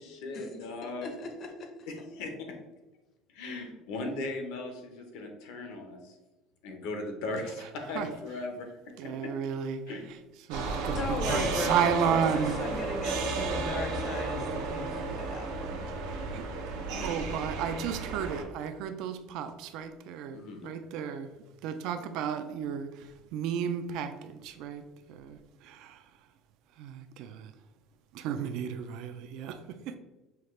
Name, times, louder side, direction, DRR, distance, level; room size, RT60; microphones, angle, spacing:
voice 1, 0.0-1.2 1.9-2.3 3.3-6.1 6.6-9.3 9.9-10.0 16.9-17.2 20.3-20.8, left 2 dB, 75° left, 4 dB, 0.9 m, -38 dB
voice 2, 1.0-1.9 10.9-15.8, left 4 dB, 35° left, 6 dB, 0.6 m, -38 dB
voice 3, 9.0-9.8 10.5-12.6 16.3-16.5 17.0-21.3 21.6-26.0 26.8-27.5 28.1-30.0, right 8 dB, 65° right, 9 dB, 0.4 m, -33 dB
sound 1, 10.5-18.4, right 3 dB, 90° right, 0.8 m, -33 dB
5.6 x 2.4 x 3.2 m, 1.1 s
cardioid pair, 155°, 0 cm